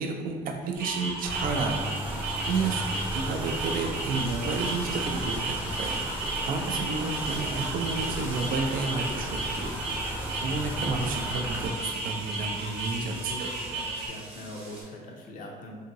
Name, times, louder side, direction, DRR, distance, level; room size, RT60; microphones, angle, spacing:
voice 1, 0.0-1.8 2.4-5.4 5.8-9.7 10.4-13.5, right 4 dB, 55° right, 3 dB, 0.4 m, -31 dB
sound 1, 0.7-14.1, right 3 dB, 75° right, 0.8 m, -34 dB
sound 2, 1.2-11.7, equal, 10° right, 0.6 m, -35 dB
sound 3, 1.8-14.8, right 1 dB, 35° right, 0.9 m, -47 dB
voice 2, 13.0-15.7, left 1 dB, 50° left, 0 dB, 0.5 m, -42 dB
2.7 x 2.7 x 2.6 m, 1.5 s
cardioid pair, 110°, 17 cm